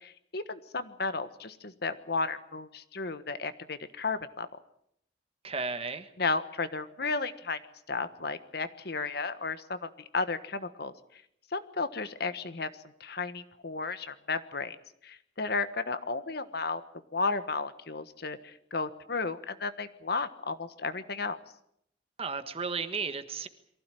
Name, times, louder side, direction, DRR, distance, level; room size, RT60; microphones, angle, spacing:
voice 1, 0.0-4.5 6.2-7.6 7.9-10.9 11.5-12.7 13.0-14.8 15.0-16.8 17.1-21.4, left 4 dB, 60° left, 11 dB, 1.4 m, -33 dB
voice 2, 5.4-6.1 22.2-23.5, right 4 dB, 30° right, 10 dB, 1.4 m, -34 dB
23.5 x 15.5 x 9.2 m, 0.73 s
head